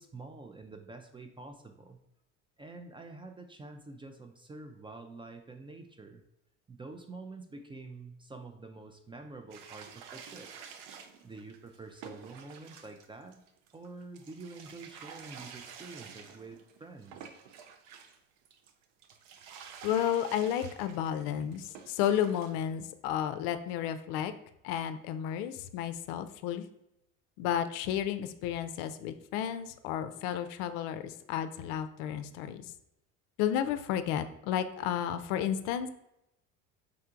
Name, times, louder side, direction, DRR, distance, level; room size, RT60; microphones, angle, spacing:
voice 1, 0.0-2.0 2.6-6.2 6.7-10.5 11.2-13.4 13.7-17.2, right 3 dB, 15° right, 5 dB, 0.3 m, -47 dB
sound 1, 9.5-18.2 18.5-22.6, right 7 dB, 75° right, 0.6 m, -50 dB
voice 2, 19.8-24.3 24.6-26.7 27.4-32.6 33.4-35.9, left 10 dB, 65° left, 10 dB, 0.5 m, -32 dB
4.3 x 3.8 x 2.5 m, 0.81 s
hypercardioid pair, 70°, 36 cm